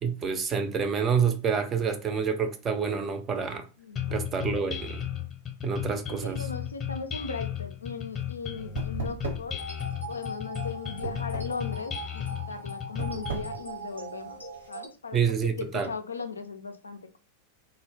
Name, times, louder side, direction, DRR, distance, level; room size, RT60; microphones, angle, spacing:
voice 1, 0.0-3.7 4.1-5.0 5.6-6.4 15.1-15.9, right 6 dB, 25° right, 0.4 m, -28 dB
voice 2, 3.8-4.2 5.9-9.6 10.1-14.4 14.7-17.2, left 5 dB, 75° left, 0.3 m, -38 dB
sound 1, 4.0-13.6, left 10 dB, 20° left, 0.7 m, -35 dB
sound 2, 7.1-14.7, right 5 dB, 65° right, 0.8 m, -40 dB
sound 3, 9.6-14.9, right 2 dB, 90° right, 0.5 m, -41 dB
2.0 x 2.0 x 3.1 m
figure-of-eight pair, 90°, 0 cm